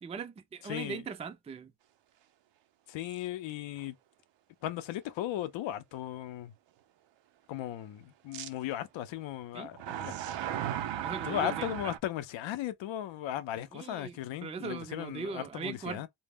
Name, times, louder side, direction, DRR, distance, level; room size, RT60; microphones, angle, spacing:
voice 1, 0.0-1.7 9.5-9.7 11.0-11.7 13.7-16.0, right 5 dB, 15° right, 0.3 m, -40 dB
voice 2, 0.7-1.0 2.9-4.0 4.6-6.5 7.5-10.1 11.2-16.1, left 12 dB, 80° left, 0.6 m, -36 dB
sound 1, 3.0-3.2 3.8-3.9 8.3-8.5 9.7-12.0, right 10 dB, 70° right, 0.5 m, -36 dB
2.1 x 2.0 x 3.4 m
cardioid pair, 85°, 45 cm